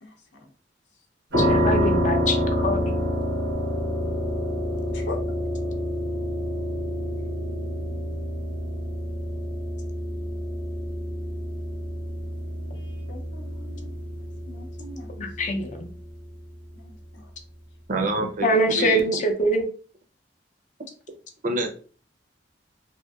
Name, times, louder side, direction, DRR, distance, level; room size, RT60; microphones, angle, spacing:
voice 1, 0.0-0.5 4.9-5.2 12.7-15.3 16.7-17.3, left 2 dB, 85° left, 3 dB, 0.6 m, -42 dB
sound 1, 1.3-16.2, equal, 85° right, 1.0 m, -28 dB
voice 2, 1.4-3.0 15.2-15.9 18.4-19.7, equal, 45° left, 5 dB, 0.5 m, -24 dB
voice 3, 17.9-19.0 21.4-21.7, right 2 dB, 45° right, 4 dB, 0.5 m, -26 dB
2.8 x 2.6 x 2.4 m, 0.40 s
head